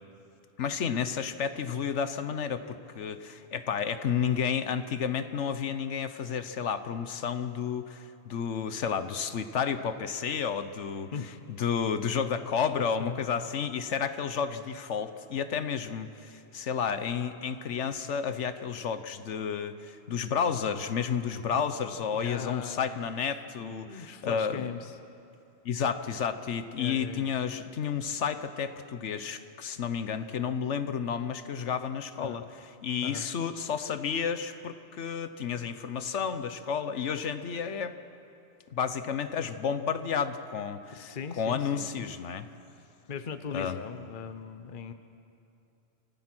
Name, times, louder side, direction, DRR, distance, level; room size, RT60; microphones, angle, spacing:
voice 1, 0.6-11.1 11.5-24.6 25.6-32.4 32.8-38.0 38.7-42.5 43.5-43.8, left 7 dB, 75° left, 10 dB, 1.2 m, -31 dB
voice 2, 12.7-13.2 21.5-21.7 22.1-23.1 23.6-24.9 26.8-27.3 32.2-32.5 33.0-33.3 40.9-42.1 43.1-44.9, left 6 dB, 50° left, 9 dB, 1.0 m, -39 dB
29.0 x 16.0 x 6.1 m, 2.7 s
omnidirectional pair, 1.2 m